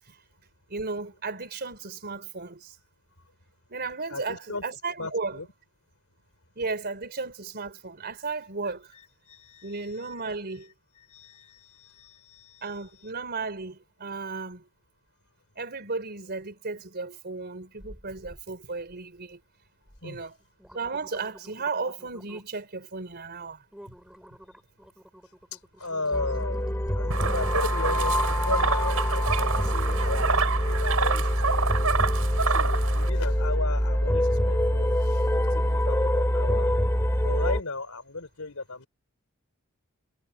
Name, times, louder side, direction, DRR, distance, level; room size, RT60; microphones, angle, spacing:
voice 1, 0.7-2.7 3.7-5.4 6.5-8.9 9.6-10.7 12.6-14.7 15.5-19.4 20.0-20.4 20.7-23.9, right 4 dB, 50° right, 3.4 m, -34 dB
voice 2, 4.1-4.6 5.0-5.5 8.9-9.0 9.3-10.1 11.0-12.6 20.0-20.2 25.5-26.7 27.0-30.4 30.6-32.0 32.4-35.2 35.5-36.7 37.2-38.9, left 3 dB, 80° left, 3.6 m, -35 dB
sound 1, 17.8-18.4 18.8-19.3 19.9-20.0 20.4-22.6 23.1-23.3 23.7-31.2 31.7-31.8, equal, 5° right, 6.4 m, -48 dB
sound 2, 26.1-37.6, equal, 10° left, 2.5 m, -25 dB
sound 3, 27.1-33.1, right 5 dB, 85° right, 4.8 m, -28 dB
head